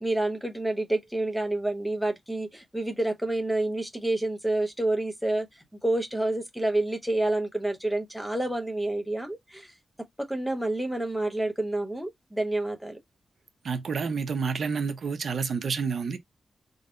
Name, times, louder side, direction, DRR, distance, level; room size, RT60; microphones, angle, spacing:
voice 1, 0.0-9.7 10.2-13.0, right 1 dB, ahead, 0.9 m, -28 dB
voice 2, 13.6-16.2, right 5 dB, 65° right, 0.6 m, -29 dB
3.9 x 2.0 x 3.8 m
wide cardioid pair, 140°, 0 cm